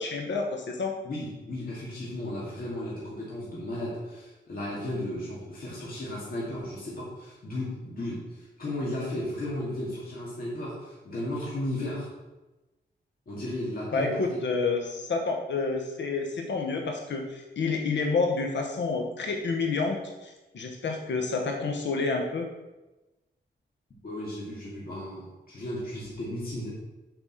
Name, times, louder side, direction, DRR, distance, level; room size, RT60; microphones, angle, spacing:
voice 1, 0.0-1.0 13.9-22.5, left 4 dB, 75° left, 2 dB, 1.1 m, -29 dB
voice 2, 1.0-12.1 13.3-14.4 24.0-26.7, left 1 dB, 50° left, -6 dB, 2.1 m, -35 dB
7.9 x 5.3 x 6.3 m, 1.1 s
wide cardioid pair, 165°, 19 cm